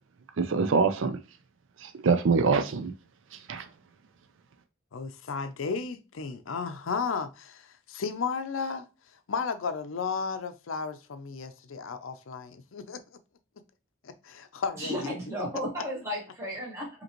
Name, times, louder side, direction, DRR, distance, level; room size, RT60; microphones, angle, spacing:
voice 1, 0.4-1.2 1.8-2.9 3.3-3.7, right 5 dB, 75° right, 0.4 m, -25 dB
voice 2, 4.9-8.9 9.1-13.0 14.0-15.1, left 5 dB, 90° left, 0.5 m, -34 dB
voice 3, 14.8-16.9, equal, 15° right, 1.5 m, -33 dB
5.1 x 2.9 x 3.0 m
head